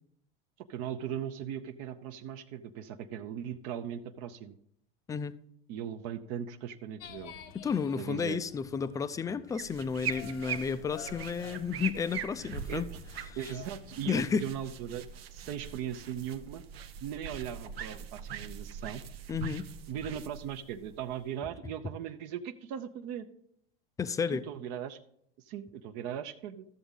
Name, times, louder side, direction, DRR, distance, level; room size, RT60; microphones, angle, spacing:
voice 1, 0.6-4.5 5.7-7.3 8.0-8.4 12.7-13.0 13.4-15.0 15.3-16.6 17.0-19.0 19.9-23.3 24.3-25.0 25.5-26.7, right 9 dB, 50° right, 8 dB, 0.7 m, -39 dB
sound 1, 7.0-14.1, left 9 dB, 70° left, 0.8 m, -51 dB
voice 2, 7.5-12.9 13.3-13.5 14.1-14.5 19.3-19.7 24.0-24.4, left 6 dB, 10° left, 14 dB, 0.4 m, -32 dB
sound 2, 9.5-21.4, right 8 dB, 85° right, 0.8 m, -42 dB
13.0 x 7.1 x 3.7 m, 0.74 s
hypercardioid pair, 110°, 30 cm